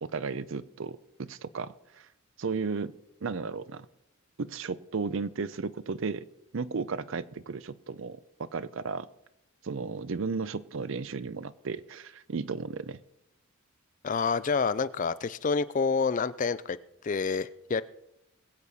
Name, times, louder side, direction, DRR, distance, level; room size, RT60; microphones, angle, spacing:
voice 1, 0.0-2.1 2.4-2.9 3.2-3.9 4.4-6.3 6.5-9.1 9.6-13.0, right 4 dB, 60° right, 16 dB, 0.5 m, -34 dB
voice 2, 14.0-16.8 17.0-17.8, left 5 dB, 35° left, 16 dB, 0.4 m, -28 dB
21.5 x 8.5 x 4.1 m, 0.83 s
head